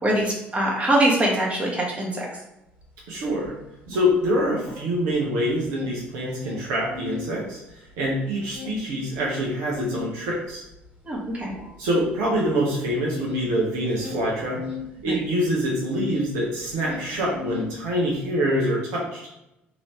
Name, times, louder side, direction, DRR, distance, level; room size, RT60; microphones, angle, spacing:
voice 1, 0.0-2.3 11.0-11.5 15.1-15.2, right 1 dB, 20° right, -3 dB, 1.0 m, -23 dB
sound 1, 2.8-2.9 3.2-5.2 5.4-7.3 7.7-16.3 16.6-18.1, left 7 dB, 75° left, 1.4 m, -37 dB
voice 2, 3.1-3.6 3.9-10.6 11.8-14.6 15.0-19.2, equal, 60° right, -4 dB, 0.7 m, -25 dB
3.0 x 2.6 x 3.2 m, 0.90 s
figure-of-eight pair, 55°, 6 cm